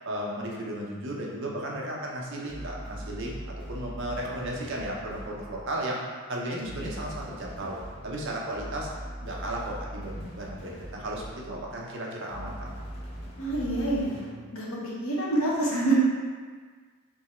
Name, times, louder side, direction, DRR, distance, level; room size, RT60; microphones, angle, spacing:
voice 1, 0.0-6.0 6.3-7.8 8.0-8.9 9.2-12.7, right 1 dB, 55° right, -2 dB, 0.7 m, -34 dB
sound 1, 2.5-5.7 6.6-11.8 12.3-14.5, equal, 30° left, 0.9 m, -41 dB
voice 2, 13.4-14.2 14.5-14.6 15.0-15.9, right 2 dB, 70° left, -5 dB, 1.1 m, -26 dB
3.5 x 2.9 x 4.2 m, 1.5 s
head